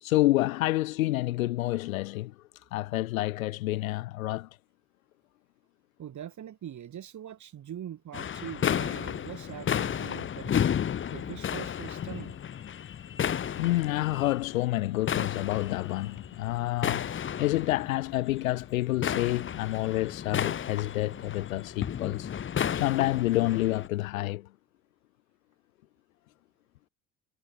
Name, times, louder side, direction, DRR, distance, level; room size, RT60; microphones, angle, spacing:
voice 1, 0.0-2.3 2.7-4.5 13.6-17.1 17.4-22.3 22.8-24.5, left 17 dB, 70° left, 2.0 m, -28 dB
voice 2, 6.0-10.7 11.1-12.4, right 10 dB, 40° right, 4.2 m, -42 dB
sound 1, 8.1-23.9, left 9 dB, 25° left, 1.0 m, -33 dB
figure-of-eight pair, 55°, 43 cm